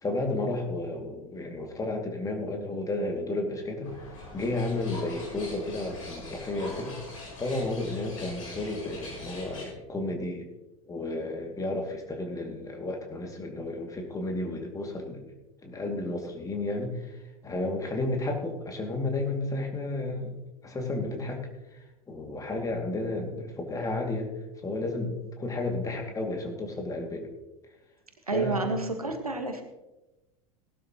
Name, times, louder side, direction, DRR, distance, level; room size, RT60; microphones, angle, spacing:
voice 1, 0.0-4.0 4.3-7.0 7.4-10.5 10.9-15.2 15.6-20.4 20.6-21.4 22.1-24.3 24.6-27.3 28.3-28.8, left 2 dB, 20° left, 3 dB, 2.5 m, -32 dB
sound 1, 3.8-9.6, left 2 dB, 65° left, 5.7 m, -43 dB
voice 2, 28.3-29.6, right 3 dB, 85° right, 6 dB, 1.5 m, -30 dB
18.5 x 12.0 x 3.0 m, 1.0 s
figure-of-eight pair, 80°, 18 cm